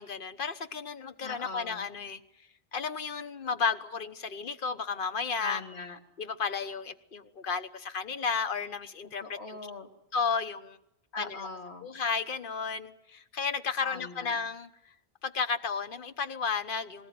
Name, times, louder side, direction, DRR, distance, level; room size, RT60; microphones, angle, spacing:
voice 1, 0.0-2.2 2.7-5.6 6.2-9.6 10.1-10.8 11.2-11.5 11.8-14.7 15.2-17.1, left 5 dB, 55° left, 11 dB, 1.2 m, -33 dB
voice 2, 1.2-1.9 5.4-6.0 9.2-9.9 11.1-11.9 13.8-14.4, left 3 dB, 80° left, 5 dB, 2.2 m, -40 dB
20.0 x 18.5 x 9.4 m, 0.80 s
omnidirectional pair, 1.1 m